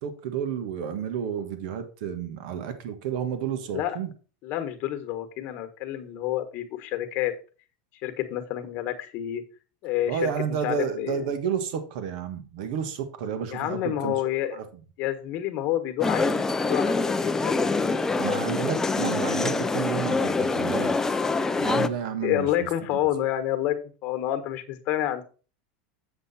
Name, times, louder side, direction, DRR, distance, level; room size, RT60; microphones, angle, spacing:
voice 1, 0.0-4.1 10.1-14.1 14.5-14.8 18.2-21.2 21.6-22.5 22.9-23.0, right 8 dB, 70° right, 1.5 m, -31 dB
voice 2, 4.4-7.3 8.0-9.4 9.8-10.3 10.6-11.3 13.5-14.6 15.0-18.0 22.2-23.8 24.0-25.2, left 12 dB, 50° left, 1.5 m, -29 dB
sound 1, 16.0-21.9, left 3 dB, 10° left, 0.5 m, -25 dB
7.8 x 6.1 x 4.2 m
supercardioid pair, 130°, 5 cm